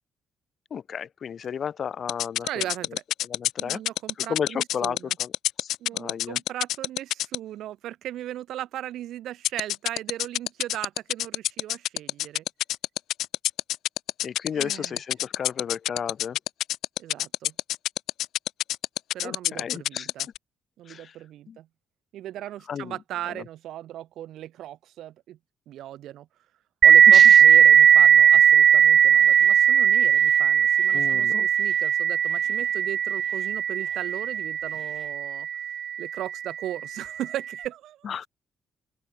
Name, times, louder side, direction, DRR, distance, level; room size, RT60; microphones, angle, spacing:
voice 1, 0.7-2.7 3.2-3.8 4.2-5.3 5.6-6.4 14.2-16.4 19.2-20.1 20.9-21.2 21.5-21.6 22.7-23.0 23.3-23.4 27.1-27.4 30.9-31.5 38.0-38.3, left 7 dB, 55° left, 1.2 m, -33 dB
sound 1, 2.1-7.4 9.4-20.4, left 13 dB, 85° left, 0.4 m, -26 dB
voice 2, 2.4-3.0 3.6-5.2 5.8-12.4 14.5-15.0 17.0-17.5 19.1-20.3 20.8-21.7 22.1-25.4 25.7-26.3 26.8-35.5 36.0-38.1, right 13 dB, 80° right, 2.2 m, -37 dB
sound 2, 26.8-36.1, right 9 dB, 60° right, 0.4 m, -18 dB
sound 3, 29.1-35.2, right 2 dB, 15° right, 7.4 m, -59 dB
open air
cardioid pair, 90°, 0 cm